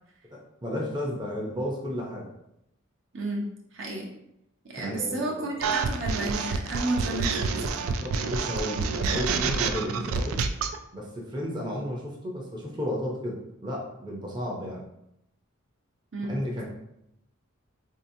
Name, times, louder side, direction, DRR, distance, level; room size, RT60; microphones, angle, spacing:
voice 1, 0.3-2.3 4.8-5.5 7.8-10.4 10.9-14.8 16.2-16.6, equal, 20° right, -3 dB, 0.6 m, -33 dB
voice 2, 3.1-4.1 4.6-8.0 16.1-16.3, right 2 dB, 60° right, -1 dB, 0.7 m, -32 dB
sound 1, 5.6-10.8, right 5 dB, 85° right, 0.3 m, -28 dB
4.2 x 2.8 x 2.7 m, 0.81 s
head